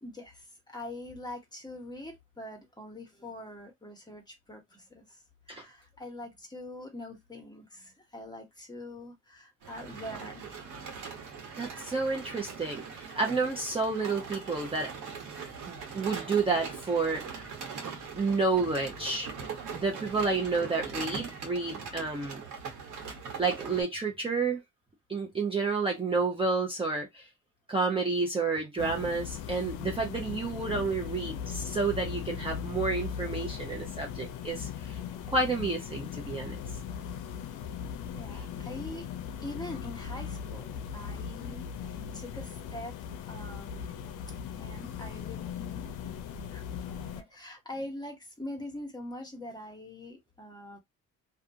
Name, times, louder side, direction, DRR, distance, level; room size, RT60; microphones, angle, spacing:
voice 1, 0.0-5.2 5.5-10.5 24.2-24.3 38.1-42.9 43.3-44.1 44.6-46.1 46.4-50.8, left 1 dB, 15° left, 1.1 m, -44 dB
sound 1, 9.6-23.8, right 5 dB, 80° right, 1.1 m, -41 dB
voice 2, 11.6-14.9 15.6-17.4 18.2-19.3 19.7-22.4 23.4-24.6 25.1-27.3 27.7-35.0 35.3-36.6, right 4 dB, 20° right, 0.7 m, -30 dB
sound 2, 28.8-47.2, left 8 dB, 90° left, 0.5 m, -39 dB
2.5 x 2.3 x 2.6 m
cardioid pair, 90°, 30 cm